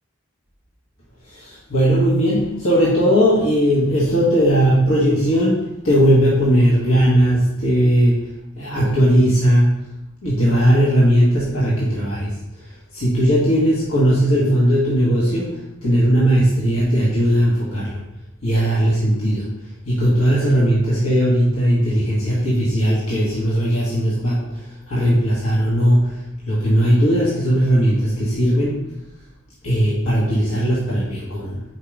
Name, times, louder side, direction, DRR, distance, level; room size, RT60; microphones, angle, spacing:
voice 1, 1.2-8.2 8.6-9.8 10.2-18.0 18.4-19.5 19.8-28.8 29.6-31.6, equal, 80° left, -7 dB, 1.6 m, -18 dB
4.8 x 4.7 x 4.9 m, 0.88 s
head